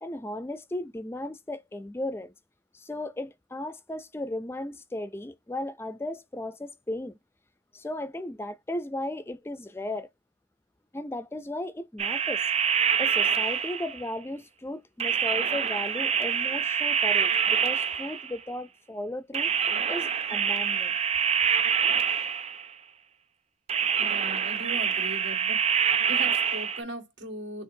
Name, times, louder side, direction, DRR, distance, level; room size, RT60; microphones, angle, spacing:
voice 1, 0.0-2.3 2.7-7.2 7.7-10.1 10.9-12.5 13.0-19.5 19.9-21.0, left 1 dB, 15° left, 0.3 m, -35 dB
sound 1, 12.0-14.1 15.0-18.4 19.3-22.7 23.7-26.8, right 7 dB, 35° right, 0.6 m, -26 dB
voice 2, 24.0-25.6 26.1-27.6, right 1 dB, 85° right, 2.0 m, -38 dB
6.3 x 2.4 x 2.6 m
head